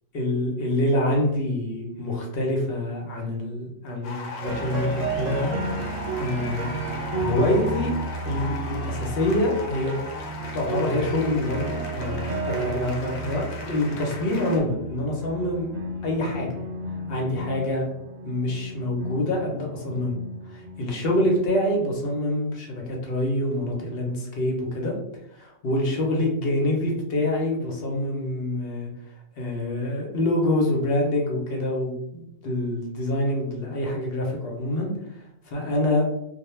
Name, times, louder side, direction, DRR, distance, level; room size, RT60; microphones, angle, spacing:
voice 1, 0.1-5.5 6.2-7.9 8.2-10.0 10.5-15.7 16.0-16.5 17.1-17.9 18.2-20.2 20.4-25.0 25.3-28.9 29.4-34.9 35.4-36.1, left 1 dB, 55° left, 0 dB, 0.7 m, -26 dB
sound 1, 4.0-14.6, left 4 dB, 85° left, 1.0 m, -38 dB
sound 2, 4.4-21.5, right 2 dB, 75° right, 1.0 m, -33 dB
2.2 x 2.2 x 3.0 m, 0.79 s
omnidirectional pair, 1.4 m